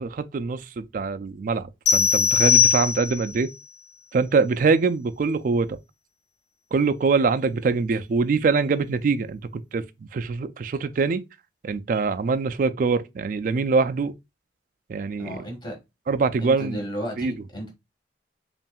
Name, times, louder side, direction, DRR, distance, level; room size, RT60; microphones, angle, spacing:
voice 1, 0.0-3.5 4.1-5.8 6.7-9.8 10.1-11.2 11.6-14.1 14.9-15.4 16.1-16.8 17.2-17.3, right 4 dB, 45° right, 0.3 m, -24 dB
sound 1, 1.9-3.4, left 7 dB, 85° left, 0.8 m, -20 dB
voice 2, 15.2-15.8 16.4-17.7, equal, 25° left, 1.5 m, -33 dB
5.5 x 2.5 x 2.3 m
head